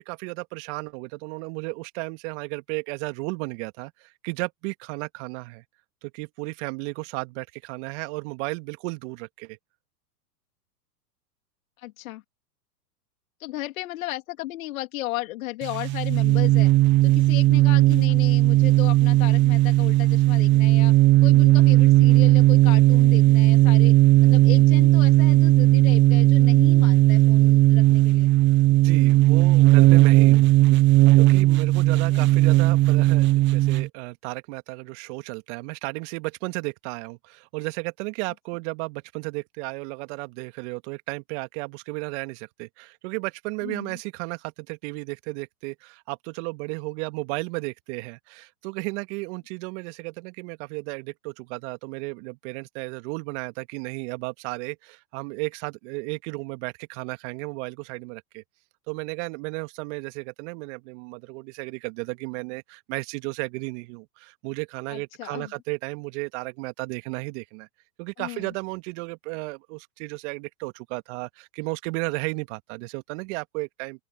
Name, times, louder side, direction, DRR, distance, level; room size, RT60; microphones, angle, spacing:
voice 1, 0.0-5.6 6.0-9.6 28.7-30.5 31.1-58.4 58.9-67.7 68.0-74.0, right 29 dB, 50° right, 2.2 m, -34 dB
voice 2, 11.8-12.2 13.4-16.7 17.0-20.9 21.2-23.9 24.2-28.3 32.1-32.4 43.6-44.0 64.9-65.5 68.2-68.5, left 17 dB, 60° left, 3.5 m, -35 dB
sound 1, 15.6-33.9, right 17 dB, 25° right, 0.6 m, -17 dB
open air
hypercardioid pair, 100°, 47 cm